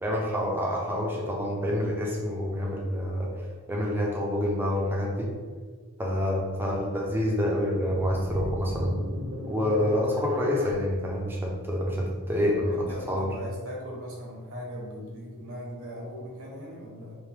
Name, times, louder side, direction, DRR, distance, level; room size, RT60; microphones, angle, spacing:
voice 1, 0.0-3.3 3.7-5.3 6.0-9.0 9.5-12.8 13.1-13.3, left 1 dB, 10° right, -2 dB, 0.5 m, -27 dB
sound 1, 7.7-10.7, left 1 dB, 65° right, 0.8 m, -36 dB
voice 2, 12.6-17.2, equal, 90° right, -3 dB, 1.1 m, -39 dB
3.2 x 2.7 x 3.6 m, 1.5 s
head